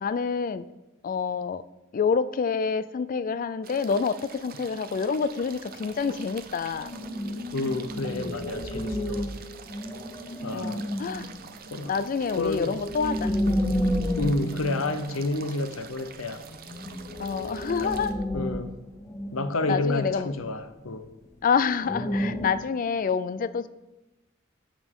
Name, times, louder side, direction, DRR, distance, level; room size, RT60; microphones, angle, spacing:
voice 1, 0.0-0.7 1.0-1.6 1.9-6.9 10.5-11.3 11.9-13.4 17.2-18.1 19.7-20.3 21.4-23.7, left 5 dB, 40° left, 0.3 m, -27 dB
sound 1, 3.6-18.1, right 6 dB, 45° right, 0.6 m, -45 dB
sound 2, 6.7-15.7 15.9-16.0 16.4-20.5 20.9-21.0 21.8-22.5, equal, 15° left, 0.7 m, -31 dB
voice 2, 7.5-9.2 10.4-10.8 11.7-12.0 12.4-12.8 14.2-16.4 17.8-18.0 18.3-18.7 19.3-21.1, left 2 dB, 80° left, 0.8 m, -30 dB
13.0 x 5.1 x 3.7 m
head